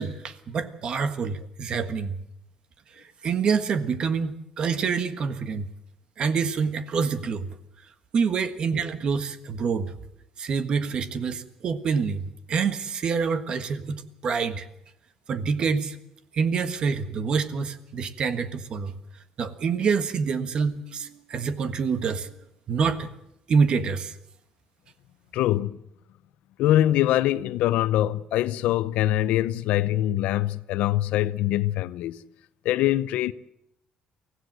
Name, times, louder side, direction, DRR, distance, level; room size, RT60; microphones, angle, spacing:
voice 1, 0.0-2.2 3.2-5.6 6.2-7.5 8.1-9.9 10.4-14.7 15.3-16.0 16.3-18.9 19.4-22.3 22.7-23.1 23.5-24.1, right 5 dB, 45° right, 1.5 m, -26 dB
voice 2, 25.3-25.8 26.6-32.2 32.6-33.3, left 13 dB, 85° left, 0.7 m, -23 dB
24.0 x 16.5 x 7.8 m
cardioid pair, 140°, 2 cm